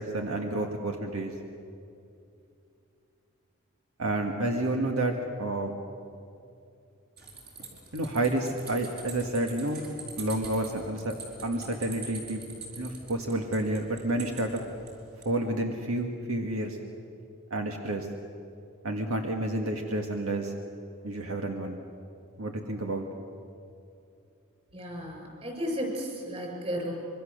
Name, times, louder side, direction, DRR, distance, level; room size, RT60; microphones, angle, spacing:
voice 1, 0.0-1.3 4.0-5.8 7.9-9.8 10.2-11.1 11.4-12.4 12.8-14.6 15.2-16.8 17.5-18.1 18.8-20.5 21.0-21.8 22.4-23.1, right 1 dB, 80° right, 3 dB, 1.7 m, -30 dB
sound 1, 7.2-15.3, right 3 dB, 45° right, 5.0 m, -44 dB
voice 2, 24.7-26.9, equal, 30° right, 1 dB, 6.4 m, -34 dB
25.0 x 23.5 x 6.6 m, 2.6 s
head